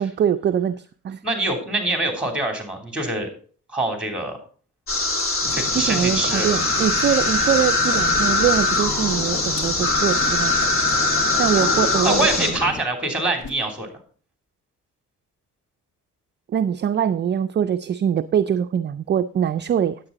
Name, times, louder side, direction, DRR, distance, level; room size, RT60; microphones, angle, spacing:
voice 1, 0.0-1.2 5.7-10.5 11.4-12.5 16.5-20.0, right 8 dB, 35° right, 10 dB, 0.4 m, -23 dB
voice 2, 1.2-3.3 3.7-4.4 5.5-6.5 11.5-13.9, right 2 dB, 5° right, 4 dB, 3.1 m, -25 dB
sound 1, 4.9-12.5, left 2 dB, 45° left, 2.4 m, -21 dB
sound 2, 5.4-12.8, left 3 dB, 15° left, 1.1 m, -34 dB
Whoosh swoosh swish, 7.3-7.4 7.7-8.6 8.9-10.8 11.2-11.5 11.7-11.9 12.2-12.8 13.0-13.6, left 3 dB, 85° left, 1.9 m, -38 dB
9.8 x 8.2 x 3.9 m, 0.43 s
cardioid pair, 90°, 30 cm